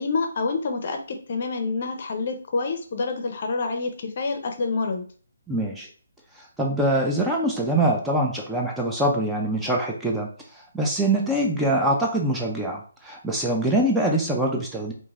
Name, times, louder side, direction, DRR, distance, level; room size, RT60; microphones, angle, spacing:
voice 1, 0.0-5.0, left 4 dB, 50° left, 5 dB, 0.5 m, -27 dB
voice 2, 5.5-5.9 6.3-14.9, right 1 dB, 5° right, -2 dB, 0.3 m, -24 dB
2.9 x 2.5 x 2.4 m, 0.42 s
hypercardioid pair, 155°, 0 cm